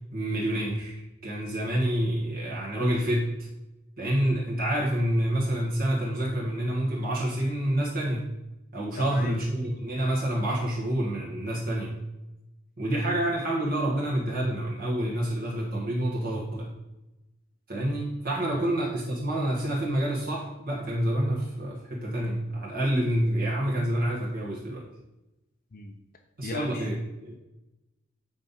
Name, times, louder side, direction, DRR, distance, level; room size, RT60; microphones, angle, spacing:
voice 1, 0.1-3.3 4.0-8.3 8.7-12.0 12.8-16.7 17.7-24.9 26.4-27.4, right 1 dB, 45° right, -4 dB, 1.5 m, -28 dB
voice 2, 9.0-9.4 18.5-18.7 25.7-25.9 26.4-26.9, left 2 dB, 45° left, 3 dB, 0.6 m, -37 dB
7.9 x 4.0 x 5.4 m, 0.97 s
head